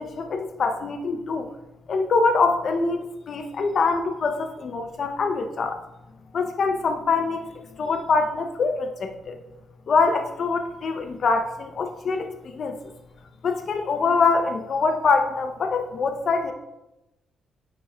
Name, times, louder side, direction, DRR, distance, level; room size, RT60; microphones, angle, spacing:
voice 1, 0.0-1.5 1.9-5.8 6.3-7.4 7.8-9.4 9.9-12.8 13.4-16.5, left 4 dB, 60° left, 6 dB, 0.5 m, -24 dB
9.4 x 5.3 x 2.2 m, 0.94 s
supercardioid pair, 65°, 0 cm